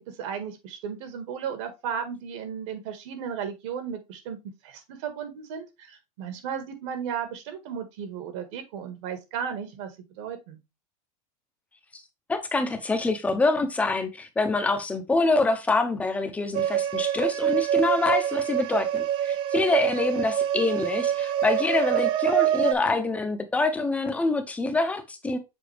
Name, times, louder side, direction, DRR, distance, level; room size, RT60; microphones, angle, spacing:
voice 1, 0.1-9.9 10.2-10.6, right 7 dB, 55° right, 1.7 m, -35 dB
voice 2, 12.3-25.4, left 3 dB, 5° left, 0.8 m, -25 dB
sound 1, 16.5-22.7, right 11 dB, 30° right, 0.4 m, -25 dB
7.1 x 4.0 x 3.3 m
supercardioid pair, 160°, 19 cm